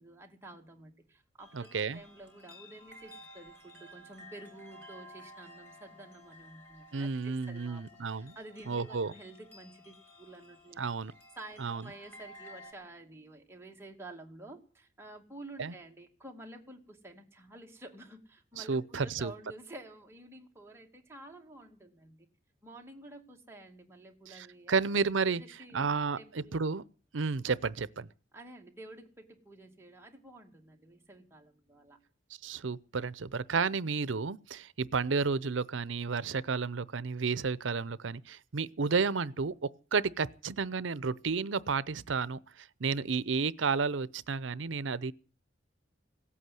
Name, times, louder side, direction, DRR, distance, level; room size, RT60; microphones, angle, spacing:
voice 1, 0.0-7.8 8.1-10.8 11.4-22.2 22.6-25.9 26.2-26.6 28.3-32.0, right 2 dB, 15° right, 2.3 m, -50 dB
sound 1, 1.4-12.7, left 1 dB, 10° left, 4.7 m, -54 dB
voice 2, 1.5-2.0 6.9-8.4 8.7-9.1 10.8-11.1 11.6-11.9 15.6-15.7 18.6-19.3 24.3-25.4 25.7-26.8 27.1-28.1 32.4-39.5 39.9-45.1, right 5 dB, 80° right, 0.7 m, -32 dB
17.5 x 8.5 x 9.3 m
head